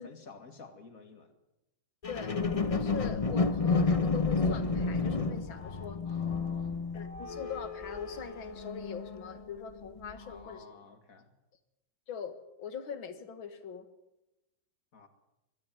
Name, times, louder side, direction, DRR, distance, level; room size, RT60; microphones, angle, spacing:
voice 1, 0.0-1.3 6.1-6.9 10.1-11.3 14.9-15.1, left 4 dB, 45° left, 7 dB, 2.6 m, -52 dB
sound 1, 2.0-9.5 10.0-10.1, left 4 dB, 25° left, 0.8 m, -31 dB
voice 2, 2.1-2.4 2.7-6.0 6.9-10.7 12.1-13.9, left 7 dB, 85° left, 10 dB, 2.4 m, -42 dB
22.0 x 13.0 x 9.5 m, 0.94 s
omnidirectional pair, 2.1 m